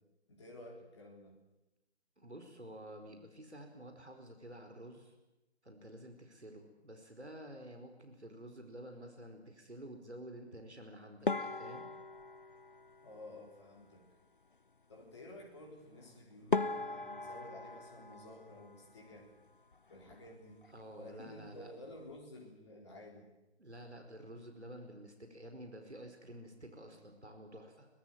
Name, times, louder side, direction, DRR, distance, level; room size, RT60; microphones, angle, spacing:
voice 1, 0.3-1.4 13.0-14.1 14.9-19.3 19.9-20.6 20.9-23.3, left 1 dB, 25° left, -1 dB, 4.0 m, -52 dB
voice 2, 2.2-5.1 5.6-11.9 20.1-20.2 20.7-21.7 23.6-27.9, right 1 dB, 75° right, 5 dB, 4.9 m, -50 dB
sound 1, 11.3-13.7 16.0-16.1 16.5-19.3 19.5-20.3 20.6-20.8 21.1-21.2 21.9-22.2, left 3 dB, 50° left, 0.8 m, -39 dB
24.5 x 18.5 x 9.0 m, 0.99 s
figure-of-eight pair, 160°, 34 cm